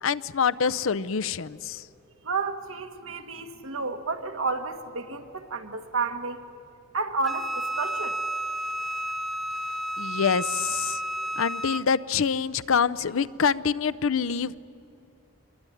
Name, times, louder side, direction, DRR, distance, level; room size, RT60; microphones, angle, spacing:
voice 1, 0.0-1.8 10.0-11.0 11.4-14.6, left 6 dB, 75° left, 16 dB, 0.6 m, -26 dB
voice 2, 2.3-6.4 6.9-7.5 7.8-8.2, right 4 dB, 75° right, 6 dB, 1.7 m, -31 dB
Wind instrument woodwind instrument, 7.2-11.9, right 1 dB, ahead, 0.6 m, -31 dB
25.0 x 22.0 x 9.9 m, 2.6 s
head